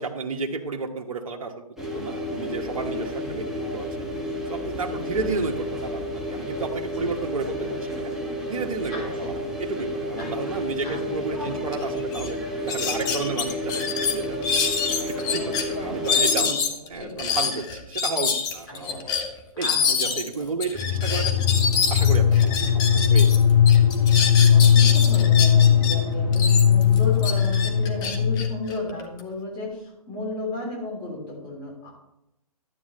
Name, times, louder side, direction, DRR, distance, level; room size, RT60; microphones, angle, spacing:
voice 1, 0.0-1.6 1.9-4.1 4.5-8.2 8.5-12.4 12.6-14.5 14.9-16.5 16.9-19.2 19.6-21.4 21.9-23.4, right 4 dB, 65° right, 2 dB, 1.2 m, -32 dB
sound 1, 1.8-16.5, equal, ahead, 1.2 m, -31 dB
voice 2, 8.9-9.6 10.2-10.3 10.8-11.0 11.3-11.6 15.3-17.4 18.7-19.0 19.6-20.5 24.5-31.9, left 2 dB, 35° left, -2 dB, 3.2 m, -35 dB
sound 2, 11.7-11.8 12.1-12.3 12.7-15.6 16.1-23.4 23.7-26.0 26.3-29.2, left 6 dB, 20° left, 1.0 m, -26 dB
sound 3, 20.7-28.6, left 8 dB, 55° left, 3.4 m, -18 dB
12.0 x 8.4 x 3.2 m, 0.84 s
hypercardioid pair, 135°, 19 cm